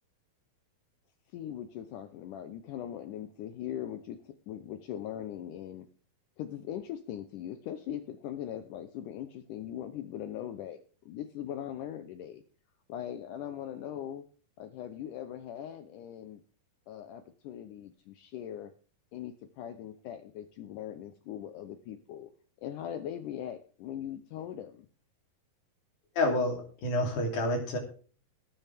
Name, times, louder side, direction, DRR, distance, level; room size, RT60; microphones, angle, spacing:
voice 1, 1.3-5.9 6.4-10.8 11.1-12.4 12.9-14.3 14.6-16.4 16.9-18.7 19.1-22.3 22.6-24.9, left 10 dB, 75° left, 10 dB, 2.0 m, -40 dB
voice 2, 26.2-27.8, left 1 dB, 60° left, 2 dB, 4.3 m, -28 dB
18.5 x 9.5 x 3.5 m, 0.40 s
omnidirectional pair, 4.2 m